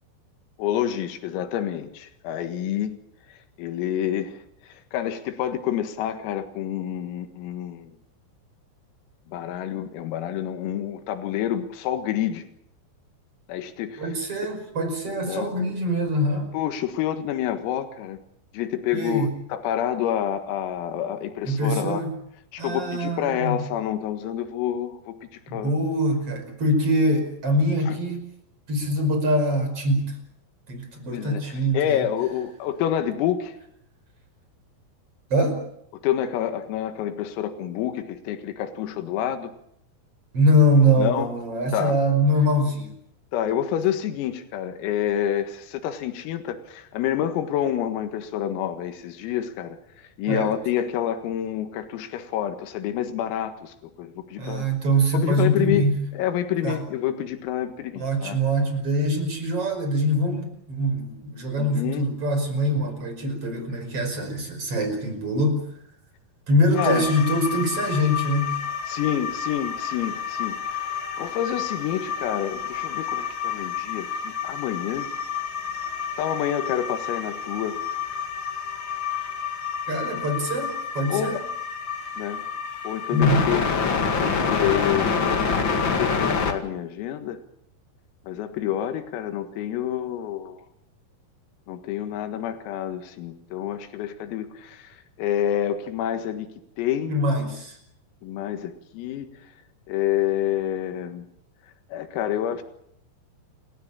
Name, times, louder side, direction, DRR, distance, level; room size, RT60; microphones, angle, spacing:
voice 1, 0.6-3.0 3.6-7.9 9.3-12.4 13.5-14.2 15.3-15.5 16.5-18.2 18.5-22.0 22.5-25.2 25.5-25.7 27.9-28.0 31.1-33.6 35.9-39.5 41.0-41.3 41.7-42.0 43.3-49.8 50.2-54.7 55.1-55.9 56.1-58.4 61.6-62.1 66.7-67.1 68.9-75.1 76.2-77.8 81.1-81.5 82.2-82.4 82.8-83.6 84.2-85.3 85.6-87.4 88.3-90.7 91.7-96.5 96.8-97.2 98.2-99.3 99.9-101.3 101.9-102.6, left 10 dB, 90° left, 7 dB, 4.4 m, -28 dB
voice 2, 14.0-16.5 18.9-19.3 21.4-22.1 22.6-23.6 25.5-28.2 28.7-30.1 30.7-32.0 35.3-35.6 40.3-42.9 50.3-50.5 54.4-56.0 56.6-56.8 58.0-65.6 66.5-68.5 79.9-81.4 83.1-83.5 97.1-97.8, equal, 30° right, 6 dB, 5.8 m, -23 dB
sound 1, 66.8-86.5, left 6 dB, 65° left, 1.2 m, -28 dB
29.0 x 16.0 x 8.8 m, 0.74 s
omnidirectional pair, 5.9 m